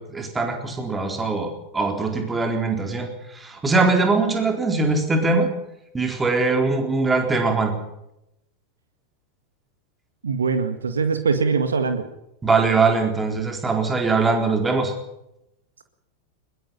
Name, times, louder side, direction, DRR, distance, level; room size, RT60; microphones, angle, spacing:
voice 1, 0.0-5.5 5.9-7.8 12.4-14.9, right 3 dB, 15° right, 4 dB, 4.2 m, -22 dB
voice 2, 10.2-12.1, right 5 dB, 70° right, 9 dB, 1.9 m, -22 dB
21.5 x 21.5 x 5.7 m, 0.84 s
figure-of-eight pair, 90°, 0 cm